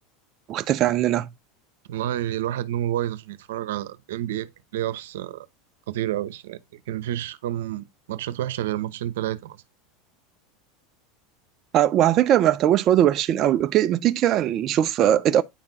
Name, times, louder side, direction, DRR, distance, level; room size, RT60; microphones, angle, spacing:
voice 1, 0.5-1.3 11.7-15.4, right 11 dB, 40° right, 0.6 m, -20 dB
voice 2, 1.9-5.5 5.9-9.6, right 12 dB, 85° right, 0.9 m, -29 dB
9.7 x 4.4 x 4.0 m
supercardioid pair, 135°, 0 cm